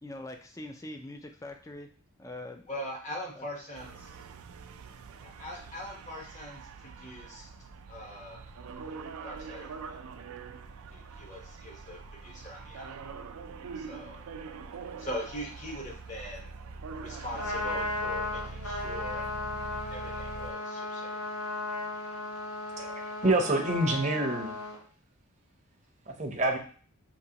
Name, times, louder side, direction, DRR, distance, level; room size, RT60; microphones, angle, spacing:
voice 1, 0.0-1.9 2.2-2.7 3.4-3.5, left 1 dB, 15° left, 5 dB, 0.3 m, -43 dB
voice 2, 2.7-4.2 5.2-7.5 7.9-8.4 9.2-10.0 10.9-13.0 13.7-14.2 15.0-16.5 17.0-19.2 19.9-21.2, left 1 dB, 35° left, -1 dB, 1.0 m, -41 dB
sound 1, 3.7-20.5, right 4 dB, 75° right, 0.4 m, -44 dB
Trumpet, 17.2-24.8, left 2 dB, 75° left, 1.0 m, -35 dB
voice 3, 22.8-24.5 26.1-26.6, right 2 dB, 30° right, 2 dB, 0.6 m, -27 dB
5.7 x 2.9 x 2.8 m, 0.43 s
head